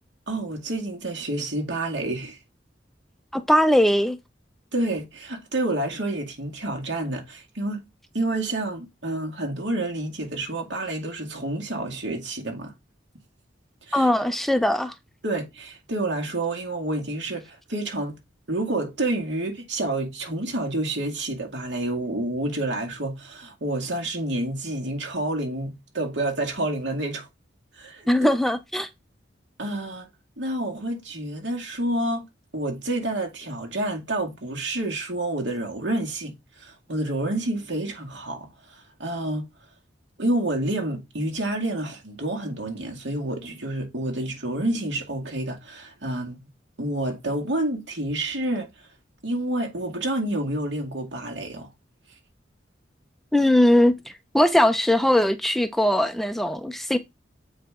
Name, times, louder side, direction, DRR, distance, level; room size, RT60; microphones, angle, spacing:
voice 1, 0.3-2.4 4.7-7.9 8.1-12.7 13.9-14.1 15.2-18.1 18.5-27.3 27.8-28.1 29.6-30.1 30.4-32.2 32.5-38.5 39.0-39.5 40.2-46.4 46.8-48.7 49.2-51.7, right 1 dB, 75° right, 2.2 m, -29 dB
voice 2, 3.3-4.2 13.9-14.9 28.1-28.9 53.3-53.9 54.3-57.0, left 1 dB, ahead, 0.5 m, -20 dB
7.9 x 4.9 x 3.7 m
head